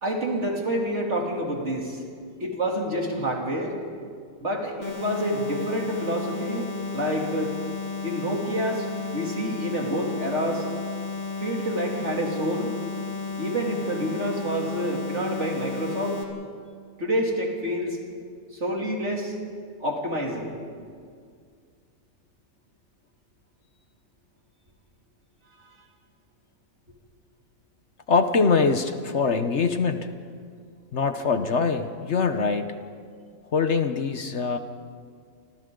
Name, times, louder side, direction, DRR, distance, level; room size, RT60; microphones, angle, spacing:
voice 1, 0.0-2.0 2.4-3.8 4.4-7.5 8.0-8.9 9.1-10.6 11.4-12.8 13.4-16.2 17.0-18.0 18.5-19.3 19.8-20.5 29.4-29.5, right 1 dB, 55° right, -1 dB, 3.3 m, -28 dB
sound 1, 4.8-16.2, left 4 dB, 35° left, 2.4 m, -33 dB
voice 2, 28.1-30.1 30.9-32.7 33.5-34.6, left 4 dB, 55° left, 8 dB, 1.2 m, -23 dB
29.5 x 25.5 x 3.9 m, 2.1 s
omnidirectional pair, 1.4 m